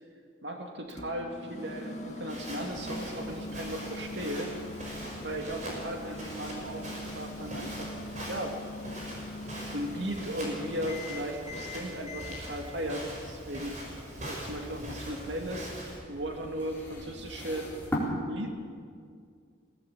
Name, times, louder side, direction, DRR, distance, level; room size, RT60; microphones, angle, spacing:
voice 1, 0.4-4.5 5.2-8.0 8.3-8.5 9.7-13.7 14.2-15.7 16.1-17.7 18.3-18.5, equal, 65° right, 3 dB, 2.2 m, -36 dB
Microwave oven, 0.9-12.4, left 1 dB, 35° left, 2.2 m, -42 dB
Walk footsteps, 2.3-16.0, right 1 dB, 40° right, 5.9 m, -42 dB
sound 1, 12.1-18.0, left 1 dB, 10° left, 4.1 m, -42 dB
21.0 x 16.5 x 8.4 m, 2.2 s
head